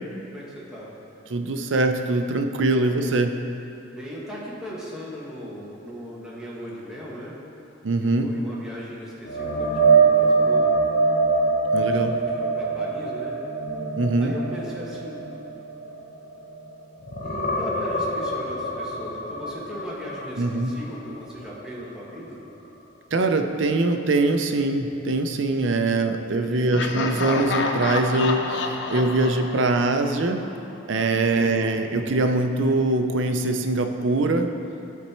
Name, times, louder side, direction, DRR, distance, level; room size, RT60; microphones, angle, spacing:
voice 1, 0.3-0.9 2.7-3.0 3.9-7.3 8.2-10.7 11.8-13.3 14.2-15.3 17.2-22.4 26.4-26.9 31.3-31.8, equal, 5° right, -7 dB, 1.5 m, -38 dB
voice 2, 1.3-3.3 7.8-8.3 11.7-12.2 14.0-14.4 20.4-20.7 23.1-30.4 30.9-34.5, right 2 dB, 75° right, 6 dB, 0.6 m, -23 dB
sound 1, 9.3-16.7 17.0-20.9 21.3-21.5 24.8-24.9, right 4 dB, 40° left, 0.9 m, -24 dB
Laughter, 26.7-30.6, left 3 dB, 65° left, 0.5 m, -29 dB
12.5 x 4.2 x 4.4 m, 2.7 s
head